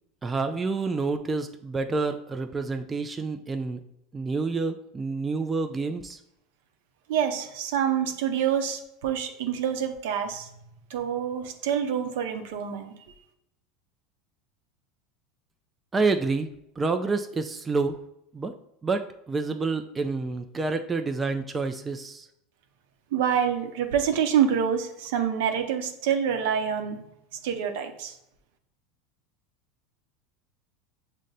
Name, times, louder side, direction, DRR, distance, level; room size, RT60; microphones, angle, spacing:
voice 1, 0.2-3.8 4.1-6.2 15.9-16.5 16.8-18.0 18.3-18.5 18.8-22.3, right 3 dB, 20° right, 6 dB, 0.4 m, -28 dB
voice 2, 7.1-10.5 10.9-12.9 23.1-27.0 27.4-28.2, right 8 dB, 75° right, 6 dB, 0.7 m, -26 dB
6.3 x 2.1 x 3.9 m, 0.81 s
supercardioid pair, 110°, 0 cm